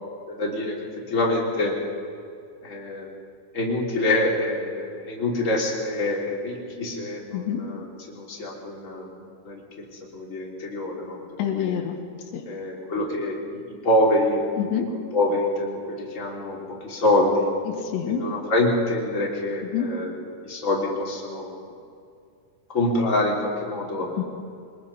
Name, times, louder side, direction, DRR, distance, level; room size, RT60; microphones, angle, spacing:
voice 1, 0.3-0.7 1.1-1.7 2.6-3.1 3.5-9.6 10.1-11.2 11.5-11.7 12.5-14.4 15.1-17.5 18.0-21.5 22.7-24.1, left 1 dB, 20° left, -3 dB, 3.2 m, -25 dB
voice 2, 11.4-12.0 12.3-12.4 14.6-14.9 17.7-18.2 19.6-19.9 24.2-24.3, left 9 dB, 90° left, 3 dB, 4.0 m, -27 dB
24.0 x 20.5 x 5.5 m, 2.4 s
omnidirectional pair, 4.8 m